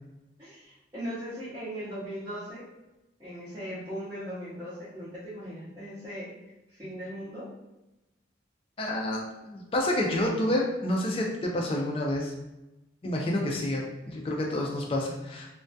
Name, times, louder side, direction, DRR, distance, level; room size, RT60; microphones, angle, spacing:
voice 1, 0.4-2.6 3.2-6.3 6.7-7.5, equal, 20° right, -13 dB, 0.6 m, -38 dB
voice 2, 8.8-12.3 13.0-15.5, left 1 dB, 30° left, -1 dB, 0.3 m, -29 dB
2.2 x 2.1 x 2.6 m, 0.97 s
head